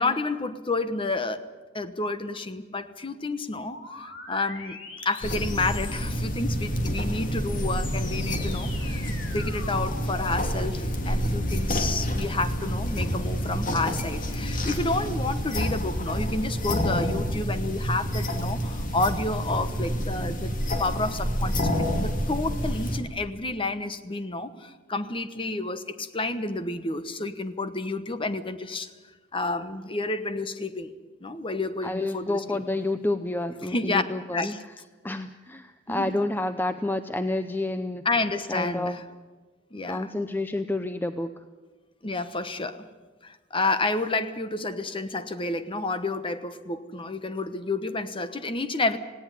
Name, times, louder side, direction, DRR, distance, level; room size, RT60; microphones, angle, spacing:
voice 1, 0.0-1.4 1.7-28.9 29.3-30.9 31.2-32.4 33.6-34.0 34.3-34.6 35.9-36.2 38.0-39.0 39.7-40.1 42.0-42.9 43.2-49.0, left 2 dB, 30° left, 11 dB, 1.1 m, -30 dB
sound 1, 3.7-6.4 7.2-13.2, left 2 dB, 75° left, 3.7 m, -42 dB
sound 2, 5.2-23.0, equal, 45° left, 2.5 m, -28 dB
voice 2, 31.8-34.6 35.0-38.0 38.5-38.9 39.9-41.3, left 2 dB, 10° left, 10 dB, 0.6 m, -29 dB
18.5 x 17.0 x 10.0 m, 1.3 s
head